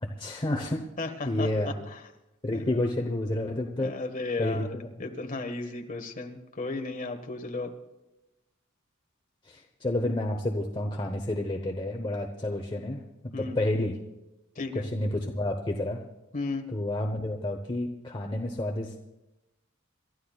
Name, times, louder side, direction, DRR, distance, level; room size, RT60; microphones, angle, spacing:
voice 1, 0.0-0.9 1.2-1.9 2.4-3.9 4.4-4.9 9.4-13.0 13.4-13.9 14.7-16.0 16.7-19.0, left 1 dB, 25° left, 2 dB, 1.0 m, -30 dB
voice 2, 1.0-1.5 1.9-2.0 2.5-3.1 3.8-4.7 5.0-7.7 13.3-13.6 14.5-14.9 16.3-16.7, left 3 dB, 40° left, 4 dB, 1.5 m, -34 dB
28.5 x 13.5 x 2.4 m, 0.97 s
head